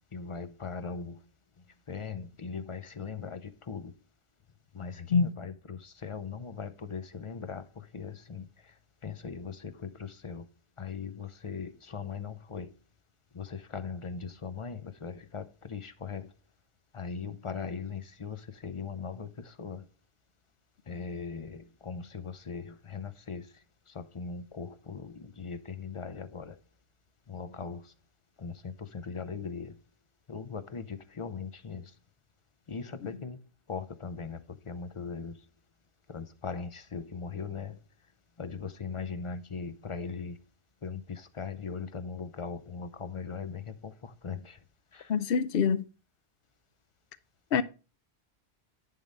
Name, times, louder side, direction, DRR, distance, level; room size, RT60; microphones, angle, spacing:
voice 1, 0.1-1.1 1.9-3.9 4.8-7.6 7.9-8.4 9.0-10.4 10.8-12.7 13.4-16.3 16.9-18.4 18.6-19.3 19.6-19.8 20.9-23.4 24.0-26.5 27.3-27.8 28.4-29.7 30.3-31.8 32.7-33.4 33.7-34.4 34.7-35.3 36.1-37.7 38.4-40.4 40.8-43.6 44.2-44.5, left 5 dB, 35° left, 0.6 m, -39 dB
voice 2, 45.1-45.8 47.5-47.6, left 6 dB, 65° left, 0.8 m, -25 dB
10.5 x 3.8 x 5.2 m
omnidirectional pair, 1.1 m